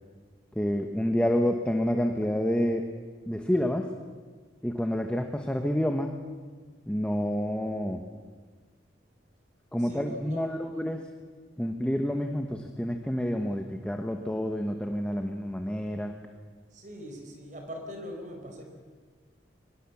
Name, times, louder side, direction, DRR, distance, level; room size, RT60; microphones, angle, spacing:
voice 1, 0.5-2.8 3.3-3.9 4.6-6.2 6.9-8.0 9.7-11.1 11.6-16.1, equal, 5° left, 4 dB, 1.1 m, -28 dB
voice 2, 9.8-10.9 16.7-18.7, equal, 45° right, 3 dB, 4.6 m, -42 dB
23.5 x 20.5 x 7.2 m, 1.5 s
head